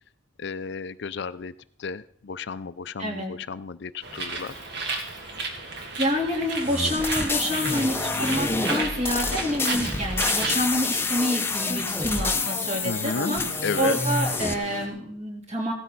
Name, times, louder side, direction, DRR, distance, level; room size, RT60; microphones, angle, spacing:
voice 1, 0.4-1.5 1.8-4.5 12.8-13.4 13.6-14.0, left 5 dB, 55° left, 14 dB, 0.5 m, -32 dB
voice 2, 3.0-3.3 6.0-13.4 13.8-15.7, equal, 35° right, 0 dB, 3.5 m, -27 dB
Bird, 4.0-10.6, right 3 dB, 55° right, 2.4 m, -33 dB
sound 1, 6.4-14.9, right 1 dB, 85° right, 3.1 m, -43 dB
sound 2, 6.6-14.5, left 3 dB, 10° left, 0.7 m, -28 dB
17.0 x 13.0 x 4.0 m, 0.63 s
head